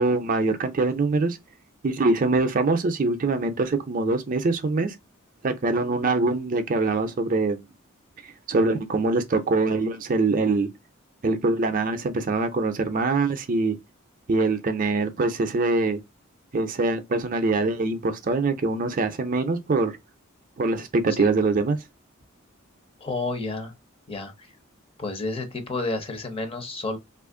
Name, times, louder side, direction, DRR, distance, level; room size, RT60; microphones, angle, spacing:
voice 1, 0.0-1.4 1.8-5.0 5.4-7.6 8.5-10.7 11.2-13.8 14.3-16.0 16.5-19.9 20.6-21.8, right 3 dB, 40° right, 0.5 m, -23 dB
voice 2, 23.0-23.7 24.1-24.5 25.0-27.0, left 2 dB, 25° left, 0.7 m, -30 dB
2.9 x 2.4 x 3.6 m
head